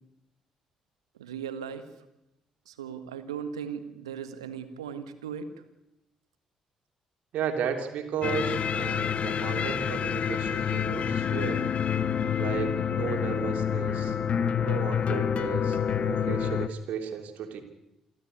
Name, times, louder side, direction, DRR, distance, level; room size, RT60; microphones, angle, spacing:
voice 1, 1.2-1.9 2.7-5.5, right 7 dB, 85° right, 11 dB, 1.6 m, -37 dB
voice 2, 7.3-11.7 12.4-14.2 14.6-17.6, right 7 dB, 65° right, 4 dB, 3.3 m, -34 dB
sound 1, 8.2-16.7, left 8 dB, 50° left, 1.2 m, -28 dB
28.0 x 13.0 x 9.7 m, 0.88 s
figure-of-eight pair, 45°, 3 cm